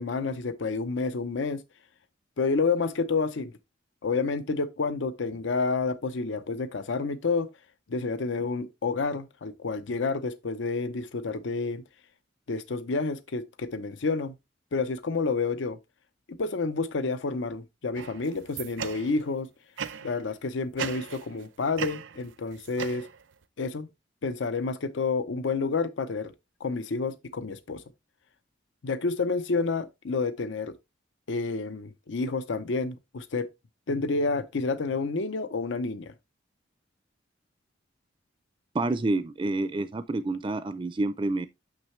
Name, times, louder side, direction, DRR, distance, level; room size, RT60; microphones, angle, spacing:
voice 1, 0.0-1.6 2.4-3.5 4.0-7.5 7.9-11.8 12.5-14.3 14.7-15.8 16.3-19.5 20.0-23.1 23.6-23.9 24.2-26.3 26.6-27.8 28.8-30.7 31.3-33.5 33.9-36.1, left 4 dB, 75° left, 0.6 m, -29 dB
sound 1, 18.0-19.3 19.8-20.2 20.8-21.4 21.8-23.4, right 7 dB, 85° right, 0.6 m, -38 dB
voice 2, 38.7-41.5, right 2 dB, 25° right, 0.4 m, -28 dB
6.4 x 6.0 x 3.1 m
head